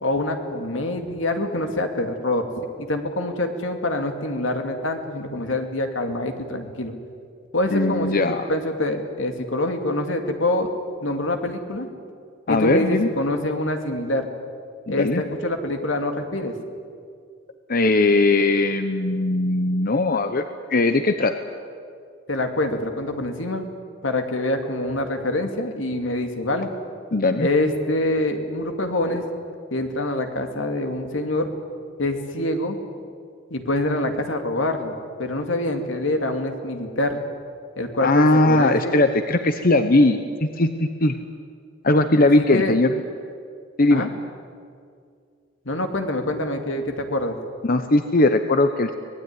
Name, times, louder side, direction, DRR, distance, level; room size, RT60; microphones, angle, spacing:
voice 1, 0.0-6.9 7.5-8.2 8.5-10.7 11.0-11.9 12.5-14.3 14.9-16.6 22.3-23.7 24.0-26.7 27.4-29.2 29.7-31.5 32.0-32.8 33.5-37.2 37.8-39.0 42.4-42.8 43.9-44.1 45.7-47.4, left 1 dB, 80° left, 5 dB, 2.5 m, -25 dB
voice 2, 7.7-8.5 12.5-13.1 14.9-15.2 17.7-20.4 20.7-21.4 27.1-27.5 38.0-41.2 41.8-42.9 43.8-44.0 47.6-48.9, left 2 dB, 50° left, 8 dB, 1.0 m, -19 dB
24.5 x 19.5 x 9.8 m, 2.3 s
head